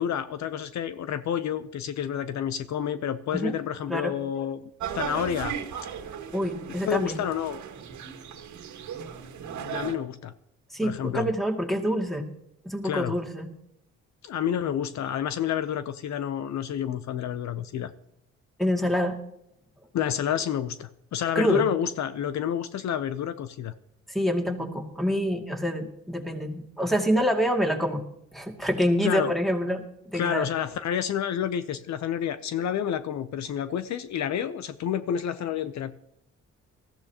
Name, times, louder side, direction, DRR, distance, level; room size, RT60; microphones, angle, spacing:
voice 1, 0.0-4.6 4.9-5.6 6.8-7.6 9.6-10.3 10.8-11.3 12.8-13.1 14.2-17.9 19.9-23.7 29.0-29.3 30.1-35.9, left 9 dB, 65° left, 12 dB, 0.8 m, -29 dB
sound 1, 4.8-10.0, right 7 dB, 70° right, 1.8 m, -36 dB
voice 2, 6.3-7.2 10.7-12.3 12.6-13.5 18.6-19.1 21.3-21.6 24.1-28.0 28.3-30.5, equal, ahead, 2 dB, 2.4 m, -26 dB
19.5 x 14.5 x 2.9 m, 0.76 s
cardioid pair, 90°, 30 cm